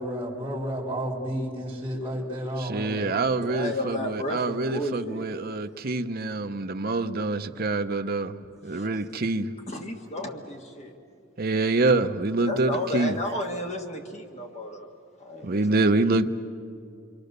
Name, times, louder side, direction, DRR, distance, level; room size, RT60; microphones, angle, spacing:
voice 1, 0.0-3.1, equal, 10° right, 4.1 m, -31 dB
voice 2, 2.6-8.3 8.6-9.5 11.4-13.2 15.4-16.3, right 3 dB, 45° right, 0.8 m, -26 dB
voice 3, 3.4-5.3 8.7-8.9 9.7-10.9 12.5-14.9 15.2-15.6, left 1 dB, 35° left, 1.6 m, -32 dB
28.0 x 23.5 x 6.7 m
head